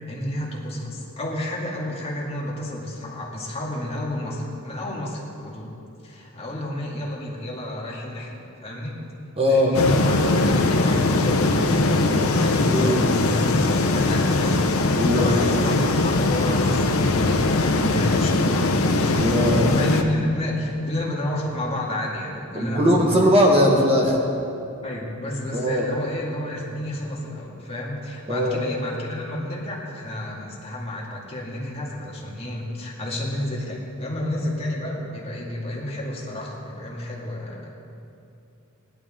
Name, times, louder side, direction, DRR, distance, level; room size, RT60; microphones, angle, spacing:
voice 1, 0.1-5.7 6.0-9.0 9.4-19.3 19.7-23.3 24.8-37.7, left 1 dB, 30° left, -3 dB, 2.2 m, -31 dB
voice 2, 9.4-9.8 12.7-13.1 15.0-15.4 19.2-19.7 22.5-24.2 25.5-25.9 28.3-28.6, equal, 25° right, -1 dB, 1.4 m, -20 dB
sound 1, 9.7-20.0, left 2 dB, 75° left, 0.8 m, -21 dB
19.0 x 11.5 x 3.8 m, 2.7 s
head